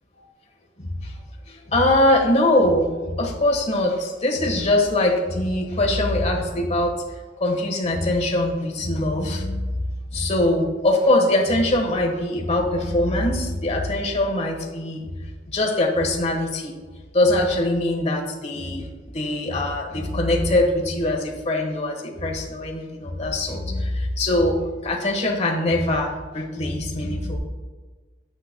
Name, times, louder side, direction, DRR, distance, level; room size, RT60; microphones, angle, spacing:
voice 1, 0.8-1.2 1.5-6.9 7.4-9.7 10.1-15.1 15.5-16.7 17.1-18.9 19.1-27.4, left 1 dB, 35° left, 1 dB, 1.3 m, -22 dB
10.5 x 7.8 x 2.2 m, 1.4 s
head